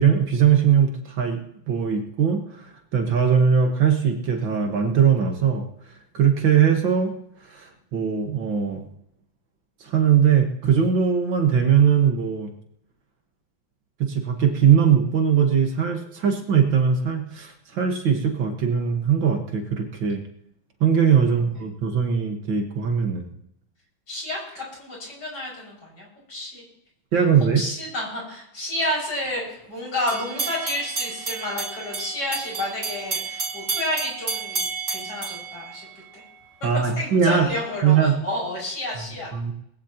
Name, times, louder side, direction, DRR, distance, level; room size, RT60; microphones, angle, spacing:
voice 1, 0.0-1.4 1.7-2.7 2.9-5.7 6.1-7.1 7.5-8.9 9.8-12.5 14.0-20.2 20.8-23.3 27.1-27.6 36.6-37.5 37.8-38.2 39.0-39.5, right 7 dB, 65° right, 4 dB, 2.2 m, -20 dB
voice 2, 24.1-26.6 27.5-35.9 36.1-36.2 36.8-39.3, left 1 dB, 55° left, -3 dB, 6.5 m, -30 dB
sound 1, 30.1-36.3, right 4 dB, 40° right, 2.1 m, -31 dB
20.0 x 15.5 x 2.9 m, 0.74 s
omnidirectional pair, 2.2 m